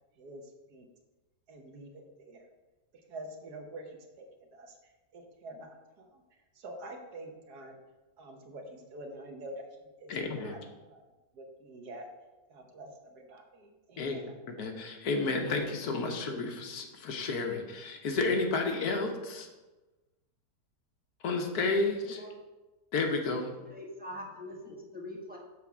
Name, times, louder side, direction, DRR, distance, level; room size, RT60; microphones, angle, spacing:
voice 1, 1.5-2.4 3.1-4.3 4.5-4.7 5.1-6.2 6.6-7.7 8.2-9.7 10.0-11.0 11.3-12.1 12.5-14.3, right 1 dB, 75° right, 3 dB, 1.5 m, -46 dB
voice 2, 10.1-10.6 14.0-14.2 14.5-19.5 21.2-22.2 22.9-23.5, left 3 dB, 70° left, 4 dB, 1.4 m, -31 dB
voice 3, 23.7-25.4, left 1 dB, 5° right, -3 dB, 1.1 m, -43 dB
6.9 x 4.3 x 6.0 m, 1.2 s
omnidirectional pair, 1.7 m